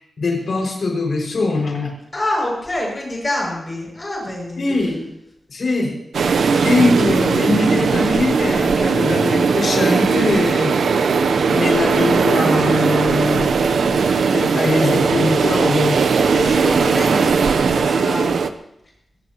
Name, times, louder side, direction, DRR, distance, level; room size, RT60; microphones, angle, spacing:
voice 1, 0.2-1.9 4.6-5.1 5.5-6.0 6.6-10.7 11.5-16.0, left 3 dB, 55° left, -1 dB, 5.9 m, -21 dB
voice 2, 2.1-4.7 16.3-18.4, left 1 dB, 20° left, -2 dB, 6.8 m, -26 dB
sound 1, 6.1-18.5, right 5 dB, 90° right, 0.8 m, -18 dB
23.0 x 16.5 x 3.0 m, 0.80 s
wide cardioid pair, 175°, 0 cm